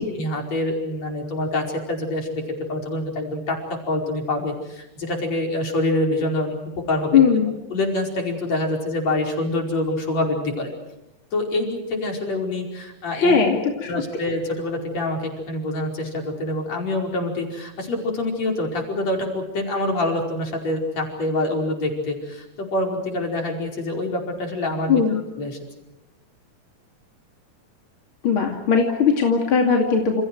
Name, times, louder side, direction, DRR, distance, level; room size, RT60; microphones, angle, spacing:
voice 1, 0.2-2.4 2.7-3.6 3.9-6.5 6.9-7.2 7.7-10.7 11.3-13.4 13.9-25.0 25.4-25.6, left 2 dB, 60° left, 2 dB, 6.2 m, -26 dB
voice 2, 7.1-7.5 13.1-13.9 24.9-25.2 28.2-30.2, left 6 dB, 45° left, 2 dB, 3.2 m, -19 dB
30.0 x 29.0 x 4.8 m, 0.93 s
omnidirectional pair, 3.4 m